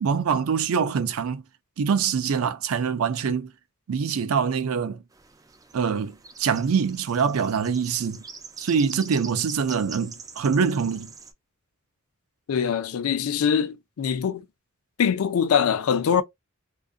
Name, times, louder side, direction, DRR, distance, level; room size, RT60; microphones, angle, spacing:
voice 1, 0.0-1.4 1.8-3.5 3.9-5.0 5.7-6.1 6.4-8.2 8.6-11.1, right 6 dB, 85° right, 0.4 m, -24 dB
sound 1, 5.1-11.3, right 4 dB, 15° right, 0.3 m, -44 dB
voice 2, 12.5-14.4 15.0-16.2, left 7 dB, 90° left, 0.4 m, -23 dB
2.4 x 2.4 x 2.4 m
head